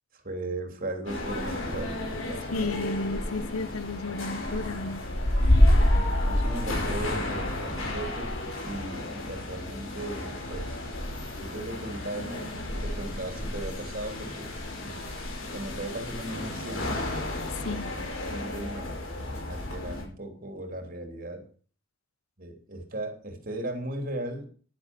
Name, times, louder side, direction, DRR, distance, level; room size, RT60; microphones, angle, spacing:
voice 1, 0.1-2.0 2.3-2.9 5.4-8.3 8.6-10.8 11.3-12.5 12.8-14.5 14.8-15.0 15.5-17.0 17.6-21.4 22.4-24.5, right 2 dB, 40° right, 5 dB, 3.1 m, -37 dB
sound 1, 1.1-20.0, left 1 dB, 70° left, 5.5 m, -29 dB
voice 2, 2.5-5.0 17.6-17.9, left 3 dB, 85° left, 16 dB, 0.9 m, -32 dB
11.0 x 10.5 x 6.1 m, 0.42 s
head